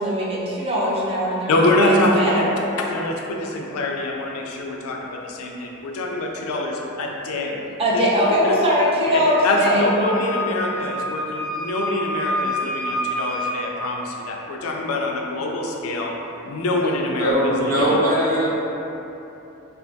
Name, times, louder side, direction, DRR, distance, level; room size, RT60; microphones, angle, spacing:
voice 1, 0.0-2.5 7.8-9.9, equal, 25° right, -5 dB, 0.4 m, -21 dB
voice 2, 1.5-2.4 2.8-7.6 7.9-8.1 9.1-16.1 16.4-18.0, left 1 dB, 70° left, 0 dB, 0.4 m, -24 dB
Wind instrument woodwind instrument, 9.2-13.6, equal, 65° right, 1.4 m, -28 dB
voice 3, 17.2-18.5, equal, 40° right, -8 dB, 0.8 m, -20 dB
3.2 x 2.4 x 2.6 m, 3.0 s
head